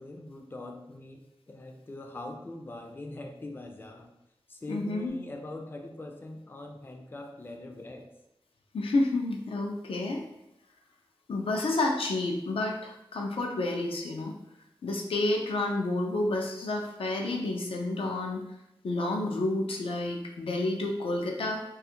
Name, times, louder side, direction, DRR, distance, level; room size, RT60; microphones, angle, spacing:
voice 1, 0.0-4.1 4.5-8.1, left 2 dB, 25° left, 3 dB, 0.3 m, -42 dB
voice 2, 4.7-5.1 8.7-10.2 11.3-14.3 14.8-18.4 18.8-21.6, left 2 dB, 90° left, 1 dB, 0.4 m, -30 dB
2.4 x 2.3 x 2.8 m, 0.87 s
wide cardioid pair, 80°, 9 cm